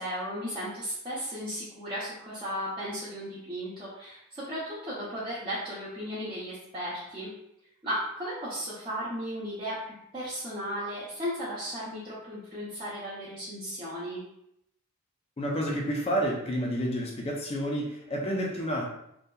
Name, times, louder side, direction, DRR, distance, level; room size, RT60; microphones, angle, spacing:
voice 1, 0.0-7.3 7.8-14.2, equal, 20° right, -10 dB, 0.5 m, -35 dB
voice 2, 15.4-18.9, equal, 30° left, -1 dB, 0.4 m, -30 dB
2.7 x 2.2 x 2.2 m, 0.78 s
head